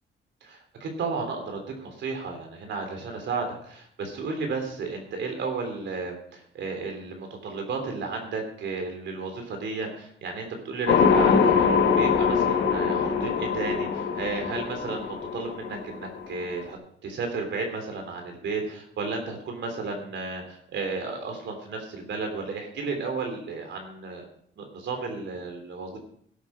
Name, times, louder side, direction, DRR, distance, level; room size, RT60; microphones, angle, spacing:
voice 1, 0.4-24.3 24.6-26.0, right 4 dB, 70° right, 4 dB, 3.4 m, -33 dB
sound 1, 10.9-16.7, left 6 dB, 70° left, 1.7 m, -23 dB
17.0 x 8.7 x 4.8 m, 0.63 s
cardioid pair, 135°, 20 cm